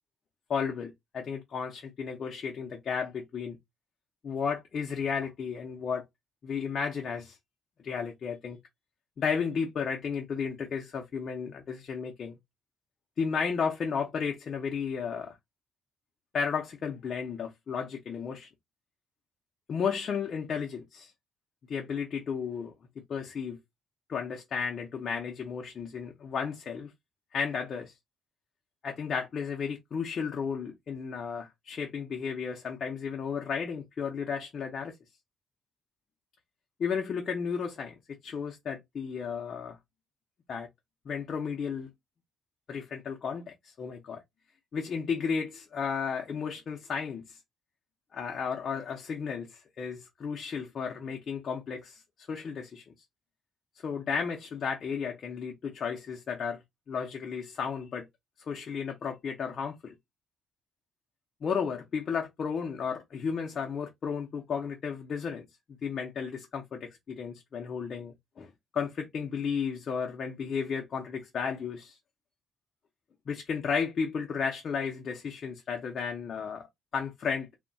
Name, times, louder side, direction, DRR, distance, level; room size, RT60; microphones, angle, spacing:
voice 1, 0.5-3.6 4.2-6.0 6.4-7.4 7.8-8.6 9.2-12.4 13.2-15.3 16.3-18.5 19.7-21.1 21.7-22.7 23.1-23.6 24.1-26.9 27.3-27.9 28.8-35.0 36.8-39.8 40.5-40.7 41.1-41.9 42.7-44.2 44.7-47.4 48.1-52.8 53.8-56.6 56.9-58.0 58.4-60.0 61.4-65.5 65.8-72.0 73.3-76.6 76.9-77.5, left 6 dB, 40° left, 0.5 m, -33 dB
3.8 x 2.1 x 2.2 m
cardioid pair, 165°, 0 cm